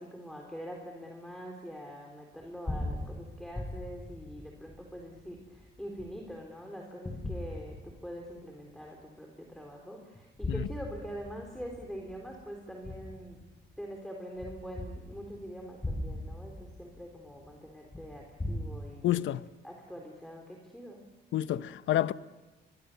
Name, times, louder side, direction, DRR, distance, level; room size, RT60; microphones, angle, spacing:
voice 1, 0.0-13.4 13.8-19.2 19.6-21.0, equal, ahead, 3.9 m, -44 dB
sound 1, 2.4-6.5 7.1-8.4 8.9-9.0 10.1-13.8 14.4-18.6, left 1 dB, 20° left, 7.6 m, -40 dB
voice 2, 19.0-19.4 21.3-22.1, left 13 dB, 75° left, 0.8 m, -29 dB
25.5 x 23.0 x 6.9 m
cardioid pair, 90°, 20 cm